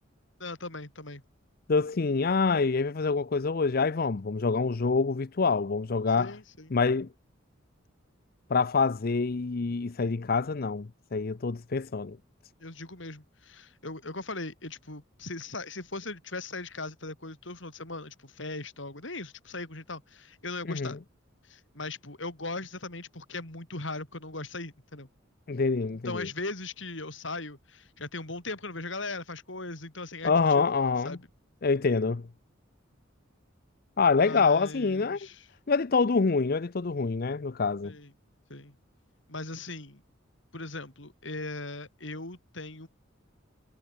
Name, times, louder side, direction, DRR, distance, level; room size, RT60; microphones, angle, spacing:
voice 1, 0.4-1.2 6.2-6.7 12.6-21.0 21.4-25.1 26.0-30.6 31.0-31.3 34.2-35.5 37.8-38.1 38.5-38.7 39.3-40.0 40.5-42.9, left 2 dB, 65° left, 5.2 m, -39 dB
voice 2, 1.7-6.3 6.7-7.1 8.5-12.2 20.7-20.9 25.5-26.3 30.2-31.2 31.6-32.3 34.0-35.2 35.7-37.9, left 4 dB, 50° left, 0.6 m, -26 dB
head